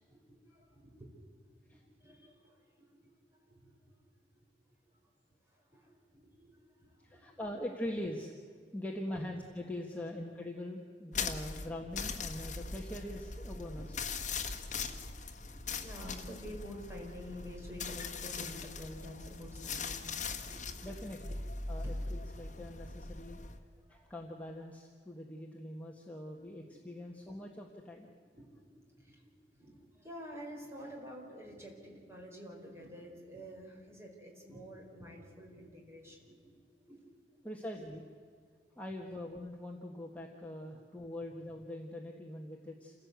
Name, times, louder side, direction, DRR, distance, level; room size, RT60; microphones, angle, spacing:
voice 1, 0.4-1.1 1.5-1.6 2.0-3.1 3.5-3.6 5.5-7.4 9.1-9.2 13.7-13.8 14.7-15.1 15.8-20.2 20.5-20.6 21.8-21.9 28.3-36.5, equal, 15° right, -1 dB, 4.9 m, -49 dB
voice 2, 7.0-8.3 8.7-14.0 20.8-21.4 21.7-23.6 23.9-28.1 37.4-38.0 38.7-42.9, left 1 dB, 10° left, -1 dB, 1.6 m, -43 dB
sound 1, 11.1-23.6, left 4 dB, 45° left, 1.6 m, -40 dB
28.0 x 16.5 x 8.2 m, 2.1 s
head